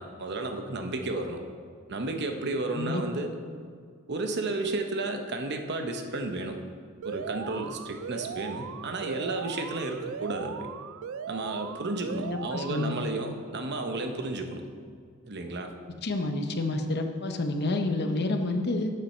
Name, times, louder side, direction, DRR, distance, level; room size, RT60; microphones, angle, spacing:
voice 1, 0.0-1.4 1.9-3.3 4.1-6.6 7.0-10.7 11.3-14.6 15.2-15.7, right 2 dB, 50° right, 5 dB, 0.8 m, -32 dB
Alarm, 7.0-13.0, right 7 dB, 65° right, 0.3 m, -39 dB
voice 2, 12.2-12.9 16.0-18.9, left 2 dB, 50° left, 5 dB, 0.8 m, -29 dB
11.5 x 7.6 x 4.3 m, 2.1 s
head